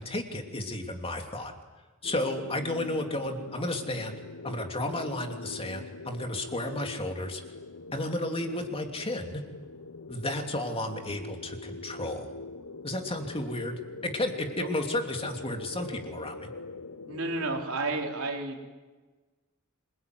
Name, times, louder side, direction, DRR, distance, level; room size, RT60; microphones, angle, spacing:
voice 1, 0.0-1.5 2.0-7.4 7.9-9.4 10.1-12.3 12.8-16.5, left 1 dB, 25° left, 3 dB, 3.0 m, -33 dB
sound 1, 2.0-17.7, left 3 dB, 85° left, 1.1 m, -44 dB
voice 2, 17.1-18.7, right 2 dB, 90° right, 1 dB, 4.2 m, -32 dB
26.5 x 22.0 x 9.6 m, 1.3 s
head